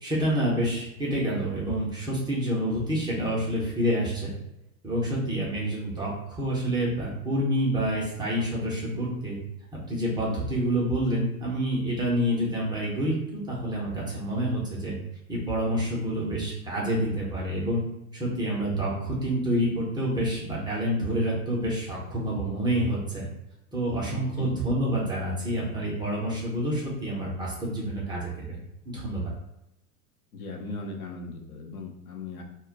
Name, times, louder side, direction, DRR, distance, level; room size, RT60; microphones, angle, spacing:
voice 1, 0.0-4.3 4.8-9.4 9.9-15.0 15.3-17.8 18.1-23.3 23.7-28.6 28.9-29.3, equal, 10° right, -5 dB, 0.5 m, -28 dB
voice 2, 24.1-24.6 30.3-32.4, left 3 dB, 75° left, 3 dB, 0.7 m, -38 dB
2.2 x 2.2 x 3.7 m, 0.87 s
figure-of-eight pair, 95°, 45 cm